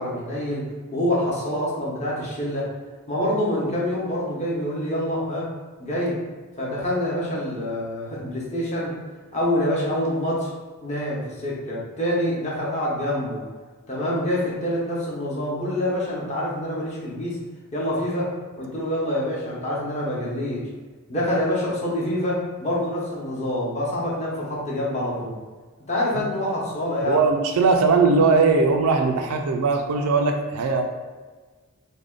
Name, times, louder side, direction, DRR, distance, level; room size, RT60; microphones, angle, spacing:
voice 1, 0.0-2.7 3.1-5.5 5.8-6.2 6.6-8.9 9.3-10.5 10.8-13.4 13.9-17.4 17.7-18.3 18.6-20.6 21.1-25.3 25.9-27.2, left 1 dB, 30° left, -5 dB, 0.9 m, -26 dB
voice 2, 27.0-30.8, right 4 dB, 75° right, 4 dB, 0.4 m, -20 dB
3.4 x 2.1 x 3.7 m, 1.4 s
head